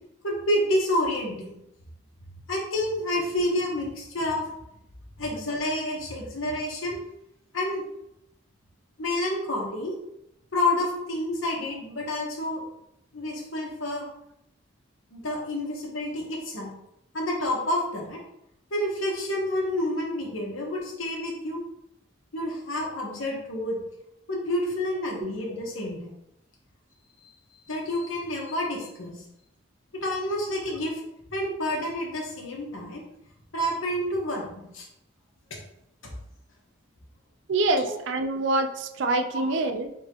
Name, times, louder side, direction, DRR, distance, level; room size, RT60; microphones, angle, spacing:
voice 1, 0.2-1.5 2.5-4.5 5.2-7.0 7.5-7.8 9.0-9.9 10.5-12.6 13.1-14.0 15.1-16.7 17.1-18.2 18.7-21.6 22.3-23.8 24.3-26.1 27.7-29.1 30.0-31.0 31.3-33.0 33.5-34.5 34.7-34.9 36.0-36.1 37.8-37.9, left 1 dB, 85° left, -1 dB, 1.2 m, -29 dB
voice 2, 37.5-39.9, right 2 dB, 65° right, 7 dB, 0.4 m, -26 dB
3.8 x 3.5 x 3.0 m, 0.80 s
head